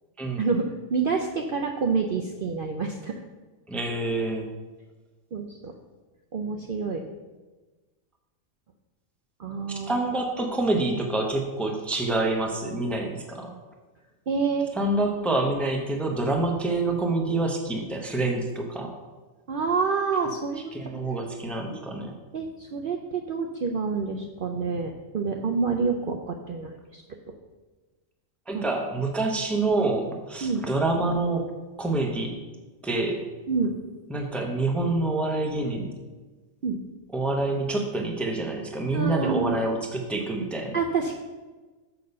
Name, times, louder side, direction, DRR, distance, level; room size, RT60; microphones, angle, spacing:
voice 1, 0.4-3.1 5.3-5.7 6.3-7.0 9.4-10.0 14.3-14.7 19.5-20.8 21.7-21.8 22.3-27.0 28.5-28.6 30.4-30.7 33.5-33.8 36.6-36.8 38.9-39.6 40.7-41.2, right 5 dB, 55° right, 2 dB, 0.6 m, -28 dB
voice 2, 3.7-4.5 9.7-13.6 14.8-19.0 20.7-22.1 28.5-31.5 31.8-32.4 32.8-33.3 34.1-35.9 37.1-40.8, right 2 dB, ahead, 2 dB, 0.7 m, -27 dB
6.8 x 6.3 x 5.4 m, 1.3 s
omnidirectional pair, 1.4 m